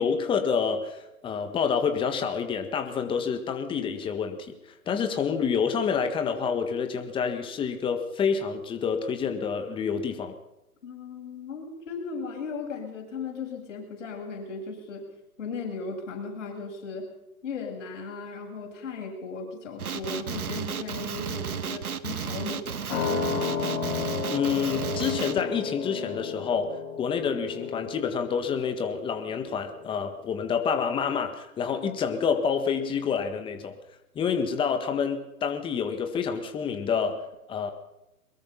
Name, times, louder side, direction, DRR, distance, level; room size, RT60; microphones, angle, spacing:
voice 1, 0.0-4.5 4.9-10.4 24.3-33.7 34.1-37.2 37.5-37.7, left 6 dB, 10° left, 7 dB, 1.6 m, -28 dB
voice 2, 10.8-15.1 15.4-17.1 17.4-22.8, left 4 dB, 55° left, 1 dB, 7.9 m, -36 dB
Male speech man speaking, 19.8-25.4, right 7 dB, 75° right, 1.7 m, -33 dB
sound 1, 22.9-30.0 30.3-30.4, left 6 dB, 30° left, 7.0 m, -33 dB
23.0 x 21.5 x 5.8 m, 0.91 s
hypercardioid pair, 140°, 44 cm